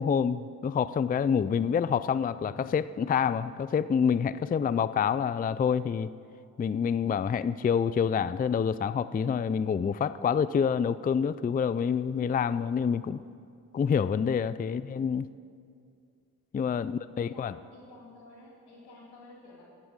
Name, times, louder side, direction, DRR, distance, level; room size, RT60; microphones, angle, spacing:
voice 1, 0.0-6.1 6.6-13.2 13.7-15.3 16.5-17.5, left 7 dB, 25° left, 16 dB, 0.4 m, -27 dB
voice 2, 16.7-19.6, left 2 dB, 90° left, -3 dB, 3.0 m, -52 dB
11.5 x 11.0 x 6.6 m, 2.3 s
supercardioid pair, 40°, 38 cm